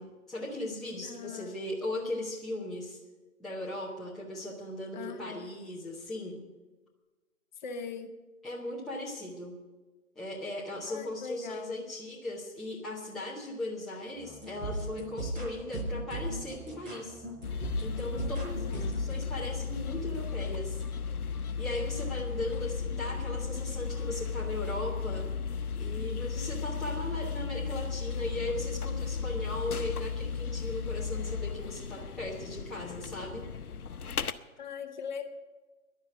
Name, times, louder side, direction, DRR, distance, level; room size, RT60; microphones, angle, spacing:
voice 1, 0.0-3.0 3.4-6.4 8.4-9.5 10.2-17.2 17.8-20.8 21.6-25.3 25.8-33.5, left 1 dB, ahead, -7 dB, 0.7 m, -38 dB
voice 2, 1.0-1.6 4.9-5.5 7.6-8.1 10.9-11.8 18.1-18.9 22.5-22.6 34.6-35.3, left 6 dB, 30° left, 7 dB, 1.0 m, -41 dB
sound 1, 14.1-19.1, right 1 dB, 15° right, 4.5 m, -37 dB
sound 2, 17.4-34.3, left 5 dB, 85° left, 0.8 m, -35 dB
11.0 x 9.6 x 9.0 m, 1.2 s
hypercardioid pair, 145°, 43 cm